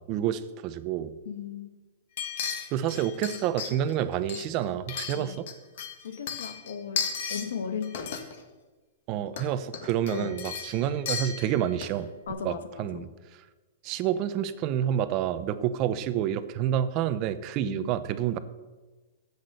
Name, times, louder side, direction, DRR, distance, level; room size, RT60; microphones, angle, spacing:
voice 1, 0.0-1.2 2.7-5.5 9.1-12.1 12.4-13.1 13.8-18.4, right 10 dB, 30° right, 12 dB, 0.7 m, -28 dB
voice 2, 1.2-1.7 5.1-5.3 6.0-8.1 10.1-10.3 12.3-13.0 17.7-17.9, left 6 dB, 90° left, 9 dB, 1.4 m, -36 dB
sound 1, 2.2-3.9 4.3-5.5 5.8-7.5 7.8-8.4 9.3-9.4 9.7-12.0 12.3-12.4, left 7 dB, 55° left, 1.7 m, -35 dB
13.0 x 8.2 x 6.8 m, 1.2 s
supercardioid pair, 165°, 0 cm